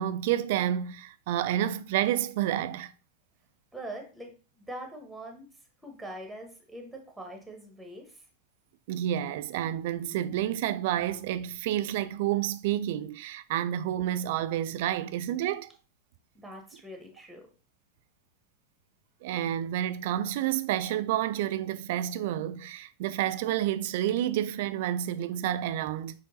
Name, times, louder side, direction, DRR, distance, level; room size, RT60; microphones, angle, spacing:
voice 1, 0.0-2.9 8.9-15.7 19.2-26.1, right 12 dB, 50° right, 0.3 m, -29 dB
voice 2, 3.7-8.3 16.3-17.5, right 1 dB, ahead, 1.1 m, -43 dB
6.4 x 3.0 x 2.7 m
figure-of-eight pair, 90°, 0 cm